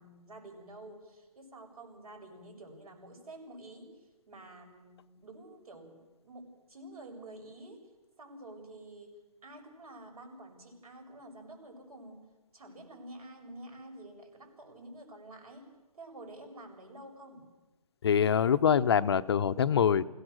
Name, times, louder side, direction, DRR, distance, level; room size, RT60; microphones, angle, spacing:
voice 1, 0.0-12.2 12.5-17.5, right 1 dB, 70° right, 3 dB, 7.4 m, -49 dB
voice 2, 18.0-20.0, left 8 dB, 45° left, 12 dB, 0.7 m, -24 dB
28.0 x 17.0 x 6.6 m, 1.1 s
hypercardioid pair, 155°, 19 cm